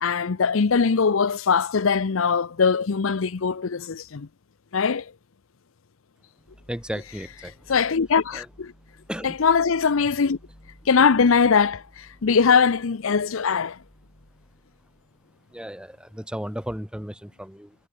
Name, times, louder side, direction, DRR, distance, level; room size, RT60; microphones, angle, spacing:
voice 1, 0.0-4.3 4.7-5.1 7.7-8.7 9.2-10.4 10.9-13.8, left 5 dB, 70° left, 0.6 m, -21 dB
sound 1, 6.4-15.7, equal, 35° left, 7.5 m, -55 dB
voice 2, 6.7-7.5 8.3-8.5 9.1-9.4 15.5-17.8, equal, 5° right, 3.4 m, -34 dB
head